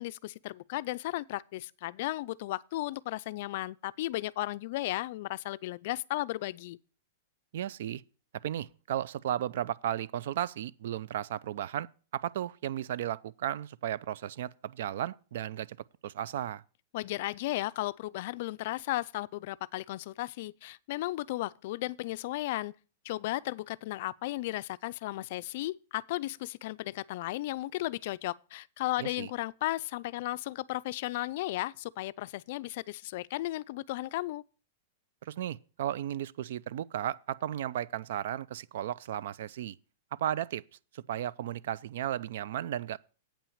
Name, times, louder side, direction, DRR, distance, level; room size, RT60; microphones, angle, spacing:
voice 1, 0.0-6.8 16.9-22.7 23.0-34.4, left 17 dB, 55° left, 0.4 m, -35 dB
voice 2, 7.5-8.0 8.4-15.8 16.0-16.6 29.0-29.3 35.2-39.8 40.2-40.6 40.9-43.0, right 11 dB, 70° right, 0.4 m, -34 dB
8.5 x 5.8 x 7.1 m
supercardioid pair, 150°, 0 cm